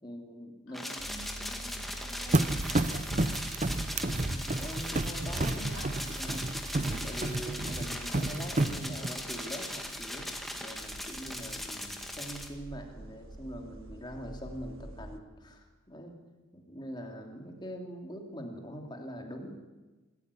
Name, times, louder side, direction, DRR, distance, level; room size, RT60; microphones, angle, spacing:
voice 1, 0.0-0.8 4.0-5.6 6.0-6.5 7.0-10.3 10.6-16.1 16.5-19.6, equal, 20° left, 2 dB, 2.8 m, -43 dB
voice 2, 0.7-3.1 5.4-5.9, left 1 dB, 70° left, 0 dB, 6.2 m, -48 dB
sound 1, 0.7-12.5, left 1 dB, ahead, 1.9 m, -39 dB
sound 2, 1.0-15.2, equal, 70° right, 1.4 m, -46 dB
sound 3, 2.3-9.1, right 2 dB, 30° right, 0.7 m, -31 dB
25.0 x 14.5 x 9.8 m, 1.2 s
head